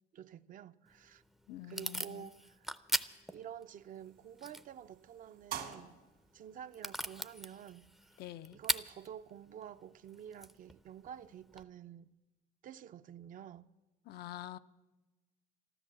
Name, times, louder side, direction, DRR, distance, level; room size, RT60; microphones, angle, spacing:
voice 1, 0.1-1.2 1.7-2.7 3.3-6.0 6.3-7.9 8.5-12.1 12.6-13.7, right 9 dB, 50° right, 0.5 m, -50 dB
Packing tape duct tape / Tearing, 0.9-11.6, right 1 dB, ahead, 0.5 m, -43 dB
voice 2, 1.5-2.3 8.2-8.6 14.1-14.6, left 14 dB, 75° left, 0.5 m, -46 dB
sound 1, 4.0-9.4, right 9 dB, 75° right, 2.1 m, -51 dB
13.0 x 13.0 x 7.5 m
cardioid pair, 110°, 17 cm